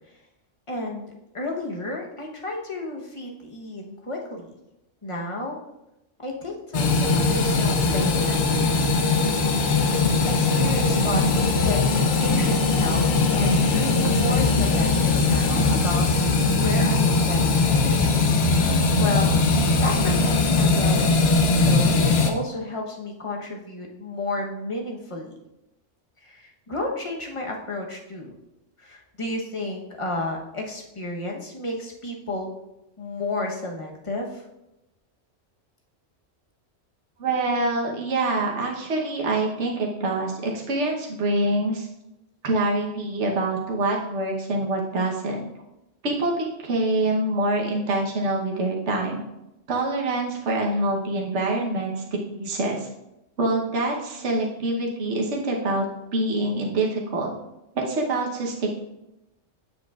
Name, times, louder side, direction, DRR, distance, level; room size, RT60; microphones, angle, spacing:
voice 1, 0.7-4.5 5.0-5.6 6.2-8.8 10.2-11.8 12.2-13.0 13.3-18.2 18.5-25.4 26.2-28.3 28.8-32.5 33.0-34.4, left 2 dB, 30° left, 0 dB, 0.9 m, -32 dB
sound 1, 6.7-22.3, left 3 dB, 60° left, 0.9 m, -20 dB
voice 2, 37.2-41.9 42.4-45.4 46.0-49.2 49.7-52.0 52.3-52.9 53.4-55.8 56.1-57.3 57.7-58.7, right 2 dB, 70° right, -1 dB, 1.3 m, -25 dB
7.9 x 6.9 x 2.4 m, 0.91 s
omnidirectional pair, 1.3 m